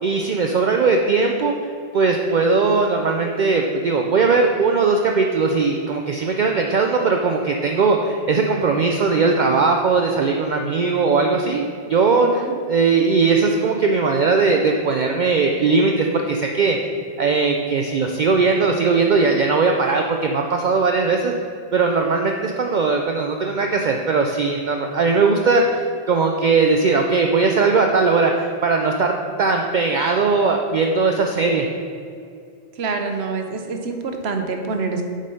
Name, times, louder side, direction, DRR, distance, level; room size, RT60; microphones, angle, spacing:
voice 1, 0.0-1.5 1.9-11.6 11.9-16.8 17.2-21.3 21.7-31.7, right 4 dB, 55° right, 3 dB, 0.6 m, -19 dB
voice 2, 12.2-12.5 32.8-35.0, right 4 dB, 70° right, 4 dB, 1.1 m, -26 dB
7.3 x 5.2 x 5.4 m, 2.5 s
omnidirectional pair, 1.1 m